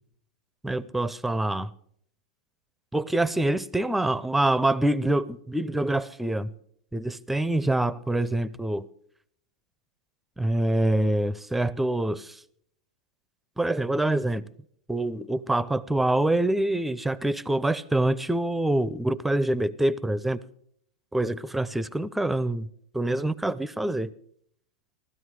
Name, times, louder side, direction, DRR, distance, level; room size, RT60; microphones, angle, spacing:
voice 1, 0.6-1.7 2.9-6.5 6.9-8.9 10.4-12.4 13.6-14.5 14.9-20.4 21.1-22.7 22.9-24.1, right 1 dB, 5° right, 0.5 m, -25 dB
16.0 x 12.5 x 4.8 m
hypercardioid pair, 125°, 3 cm